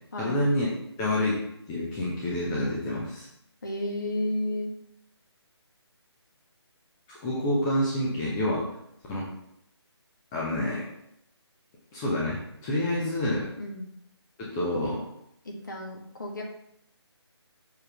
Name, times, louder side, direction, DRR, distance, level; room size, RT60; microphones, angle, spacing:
voice 1, 0.2-0.7 1.0-1.4 1.7-3.3 7.1-8.6 9.1-9.3 10.3-10.8 11.9-13.5 14.4-15.0, left 1 dB, 10° left, -6 dB, 0.6 m, -28 dB
voice 2, 3.6-4.7 13.6-13.8 15.5-16.4, left 1 dB, 45° left, 0 dB, 1.6 m, -32 dB
6.7 x 3.7 x 5.8 m, 0.76 s
figure-of-eight pair, 150°, 14 cm